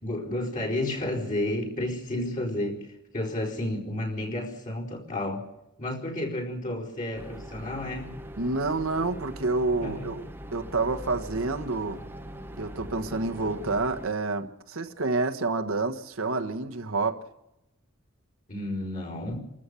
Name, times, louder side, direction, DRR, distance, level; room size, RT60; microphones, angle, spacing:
voice 1, 0.0-5.4 5.8-8.1 9.8-10.1 18.5-19.5, left 1 dB, 35° left, 4.7 m, -31 dB
sound 1, 7.1-14.1, equal, 10° right, 1.0 m, -41 dB
voice 2, 8.4-12.0 12.6-17.2, right 3 dB, 70° right, 1.4 m, -28 dB
27.0 x 14.0 x 8.3 m
head